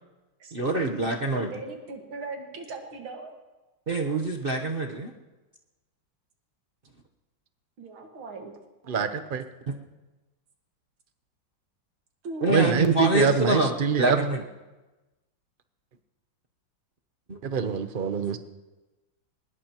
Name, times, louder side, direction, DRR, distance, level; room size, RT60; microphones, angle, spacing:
voice 1, 0.5-1.5 3.9-5.1 12.4-14.4 17.3-17.4, right 1 dB, 35° right, 1 dB, 0.9 m, -26 dB
voice 2, 1.3-3.3 7.8-8.5 12.2-12.9, right 2 dB, 90° right, 2 dB, 2.6 m, -39 dB
voice 3, 8.9-9.4 12.5-14.2 17.4-18.4, right 6 dB, 65° right, 8 dB, 0.5 m, -24 dB
22.5 x 20.5 x 3.0 m, 1.1 s
omnidirectional pair, 2.2 m